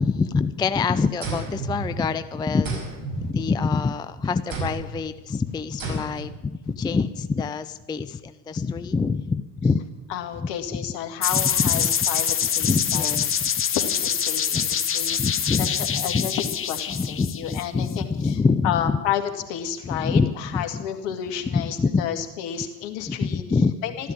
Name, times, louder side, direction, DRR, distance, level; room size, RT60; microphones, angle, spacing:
voice 1, 0.0-2.8 3.2-9.8 10.7-10.8 11.3-11.9 12.6-13.5 14.5-14.7 15.2-16.3 16.9-19.0 19.8-20.8 21.5-22.1 23.1-23.7 24.0-24.1, left 4 dB, 10° left, 12 dB, 0.4 m, -25 dB
sound 1, 1.2-2.3 2.6-3.9 4.5-5.0 5.8-6.4, right 3 dB, 40° right, 5.6 m, -33 dB
voice 2, 10.1-13.2 13.7-18.4 18.6-23.4 23.8-24.1, left 9 dB, 60° left, 7 dB, 2.1 m, -31 dB
sound 2, 11.2-17.9, left 8 dB, 25° left, 1.0 m, -25 dB
13.0 x 12.5 x 8.7 m, 1.1 s
hypercardioid pair, 75°, 50 cm